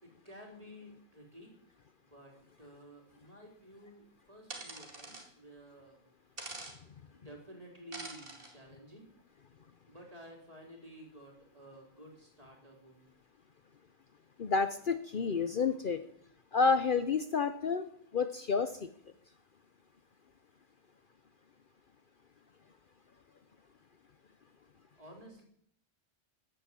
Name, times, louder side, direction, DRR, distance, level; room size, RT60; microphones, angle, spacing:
voice 1, 0.0-1.5 2.0-6.0 7.1-9.1 9.9-13.1 24.9-25.4, equal, 30° right, 0 dB, 4.2 m, -53 dB
sound 1, 4.5-5.3 6.4-6.8 7.9-8.5, right 2 dB, 50° right, 2.6 m, -44 dB
voice 2, 14.4-16.0 16.5-18.7, left 5 dB, 50° left, 10 dB, 0.9 m, -30 dB
13.5 x 10.5 x 8.4 m, 0.67 s
omnidirectional pair, 1.2 m